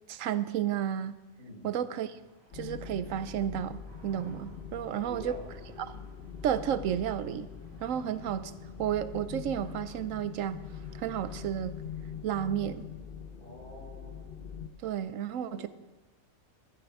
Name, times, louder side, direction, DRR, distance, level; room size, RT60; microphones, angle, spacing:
voice 1, 0.1-1.2 1.6-2.2 2.5-5.4 5.8-6.0 6.4-7.5 7.8-8.5 8.8-10.6 10.9-11.8 12.2-12.9 14.8-15.7, right 10 dB, 75° right, 14 dB, 1.0 m, -32 dB
sound 1, 1.7-12.1, right 1 dB, 25° right, 4.1 m, -60 dB
sound 2, 2.5-14.7, left 7 dB, 45° left, 1.0 m, -43 dB
voice 2, 4.9-5.5 13.4-14.2 15.5-15.7, equal, 75° left, -4 dB, 5.6 m, -46 dB
12.5 x 10.5 x 4.8 m, 1.1 s
omnidirectional pair, 1.4 m